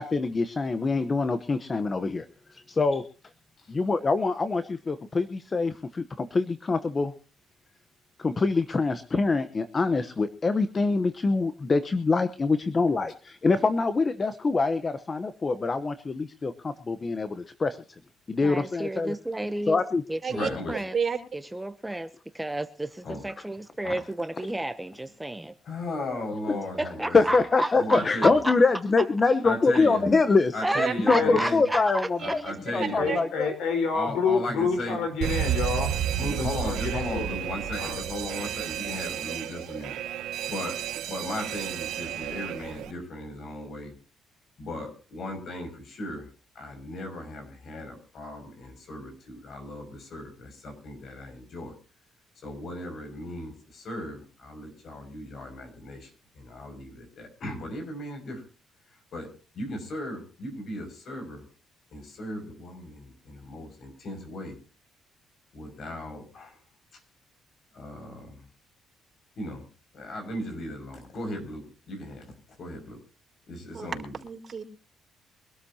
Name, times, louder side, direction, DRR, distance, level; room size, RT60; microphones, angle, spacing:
voice 1, 0.0-2.3 2.5-3.0 3.7-7.1 8.2-17.8 18.3-19.1 19.7-20.0 26.5-26.6 27.1-30.6 31.0-32.4 32.7-33.5, left 3 dB, 30° left, 11 dB, 1.0 m, -24 dB
voice 2, 18.3-19.8 20.1-21.0 21.3-25.5 26.8-28.5 30.6-32.1 32.4-32.5, right 1 dB, 10° right, 10 dB, 0.8 m, -32 dB
voice 3, 20.3-20.7 23.0-23.2 23.8-23.9 25.7-27.1 27.8-28.3 29.4-30.0 30.5-31.6 32.2-33.0 33.9-35.0 36.2-39.9 40.5-40.7 41.1-43.9 44.6-46.2 46.6-51.7 52.4-56.1 56.4-58.4 59.1-59.3 59.5-61.4 61.9-64.6 65.5-66.5 67.7-68.4 69.4-69.6 69.9-72.3 72.6-73.0 73.5-74.1, left 1 dB, 55° left, 4 dB, 6.2 m, -36 dB
voice 4, 31.1-31.4 33.0-37.4 37.8-38.0, left 4 dB, 80° left, 4 dB, 4.6 m, -28 dB
voice 5, 32.8-33.2 73.7-73.9 74.2-74.6, right 6 dB, 40° right, 0 dB, 4.7 m, -30 dB
Alarm, 35.2-42.9, right 10 dB, 80° right, 1.0 m, -31 dB
25.0 x 12.5 x 2.9 m, 0.37 s
cardioid pair, 100°, 0 cm